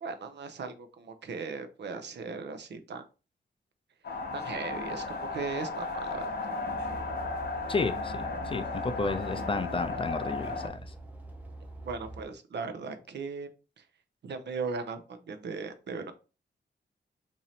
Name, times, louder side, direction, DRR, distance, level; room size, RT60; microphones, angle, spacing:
voice 1, 0.0-3.0 4.3-6.5 11.8-13.5 13.8-13.9 14.2-16.1, right 4 dB, 70° right, 0.6 m, -38 dB
sound 1, 4.0-10.7, left 3 dB, 60° left, 0.9 m, -35 dB
sound 2, 6.7-12.2, right 2 dB, 10° right, 0.6 m, -44 dB
voice 2, 7.7-10.8, left 4 dB, 30° left, 0.4 m, -32 dB
3.1 x 2.7 x 4.1 m
wide cardioid pair, 145°, 19 cm